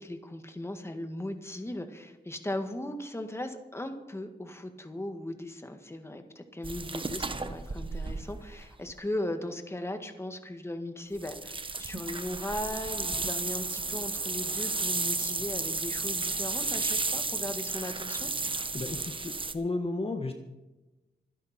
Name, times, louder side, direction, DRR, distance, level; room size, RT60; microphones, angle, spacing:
voice 1, 0.0-18.3, left 1 dB, 15° left, 6 dB, 1.8 m, -38 dB
sound 1, 6.6-8.9 11.2-19.5, right 3 dB, 30° right, 1.2 m, -33 dB
voice 2, 18.7-20.3, left 2 dB, 35° left, 4 dB, 1.5 m, -33 dB
25.5 x 10.5 x 4.4 m, 1.0 s
wide cardioid pair, 100°, 17 cm